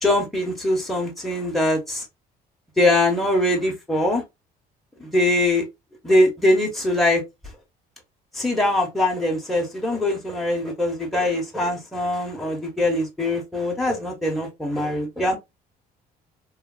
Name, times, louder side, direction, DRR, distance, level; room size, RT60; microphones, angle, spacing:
voice 1, 0.0-2.0 2.8-4.2 5.0-5.6 6.0-7.2 8.3-15.4, left 1 dB, ahead, 0.9 m, -22 dB
3.1 x 2.3 x 2.3 m
cardioid pair, 110°, 17 cm